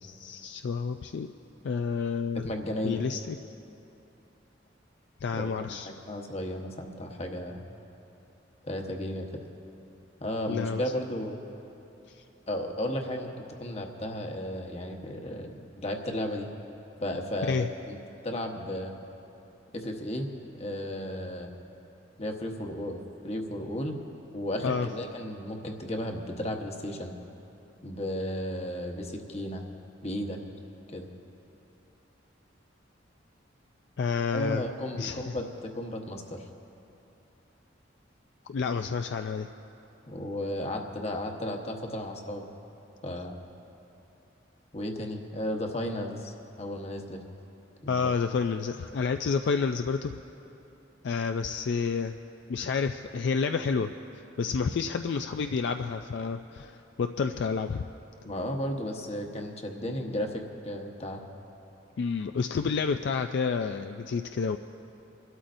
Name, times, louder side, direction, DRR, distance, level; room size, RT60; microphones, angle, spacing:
voice 1, 0.0-1.3 1.6-2.4 2.8-3.4 5.2-5.9 10.5-10.8 12.1-12.2 17.5-17.7 24.6-24.9 34.0-34.6 35.0-35.3 38.5-39.5 47.9-50.2 51.0-52.2 52.5-53.9 54.4-57.8 62.0-64.6, left 5 dB, 60° left, 6 dB, 0.3 m, -29 dB
voice 2, 2.5-3.0 5.3-7.6 8.6-9.3 10.2-11.4 12.5-16.5 17.0-18.0 18.2-18.9 19.7-20.3 20.6-21.5 22.2-23.9 24.3-27.1 27.8-29.6 30.0-30.4 30.9-31.1 34.3-36.4 40.1-42.5 43.0-43.3 44.7-47.2 47.8-48.2 58.2-61.2, left 1 dB, 35° left, 3 dB, 1.1 m, -34 dB
28.5 x 12.5 x 2.6 m, 2.9 s
head